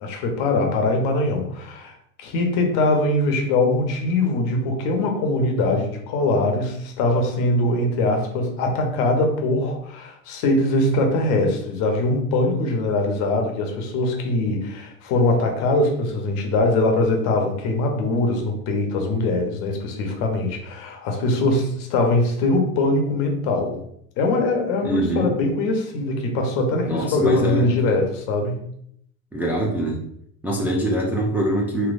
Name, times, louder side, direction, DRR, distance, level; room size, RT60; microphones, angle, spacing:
voice 1, 0.0-1.9 2.2-23.8 24.2-28.6, left 2 dB, 55° left, 3 dB, 1.0 m, -22 dB
voice 2, 24.8-25.3 26.9-27.7 29.3-30.0 30.4-31.9, right 1 dB, 5° right, -3 dB, 0.5 m, -23 dB
3.2 x 3.0 x 2.5 m, 0.69 s
hypercardioid pair, 95°, 43 cm